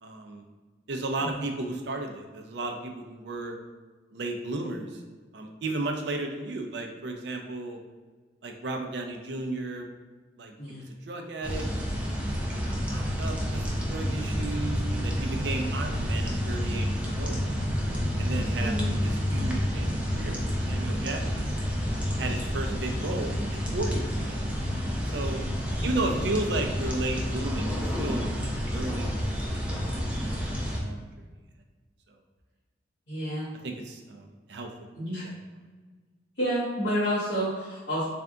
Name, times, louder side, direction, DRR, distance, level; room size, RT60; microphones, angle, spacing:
voice 1, 0.0-0.4 0.9-3.6 4.1-5.0 5.3-7.8 8.4-9.9 10.4-10.5 11.0-12.2 12.7-17.4 18.2-21.5 22.2-23.4 23.7-24.3 25.1-25.4 25.8-29.6 29.9-30.0 30.3-31.1 33.6-34.7 35.2-35.3, right 2 dB, 65° right, 3 dB, 0.5 m, -34 dB
sound 1, 11.4-30.8, equal, 5° right, 0.5 m, -29 dB
voice 2, 33.1-33.5 34.9-35.2 36.4-38.1, equal, 70° left, -11 dB, 1.2 m, -29 dB
3.4 x 2.4 x 3.7 m, 1.3 s
head